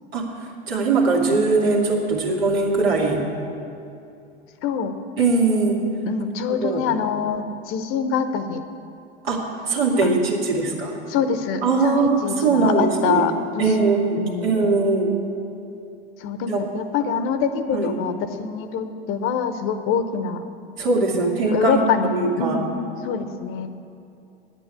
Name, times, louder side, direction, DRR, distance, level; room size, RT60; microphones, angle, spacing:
voice 1, 0.7-3.2 5.2-5.8 6.6-6.8 9.2-11.0 11.6-15.2 16.5-16.6 17.7-18.0 20.8-21.8 22.1-22.6, right 3 dB, 70° right, -1 dB, 2.3 m, -21 dB
voice 2, 4.6-4.9 6.1-8.6 10.0-10.6 11.1-13.8 14.2-14.6 16.2-20.4 21.1-22.7 23.0-23.7, left 6 dB, 40° left, 9 dB, 0.9 m, -25 dB
10.0 x 8.4 x 8.9 m, 2.6 s
figure-of-eight pair, 85°, 31 cm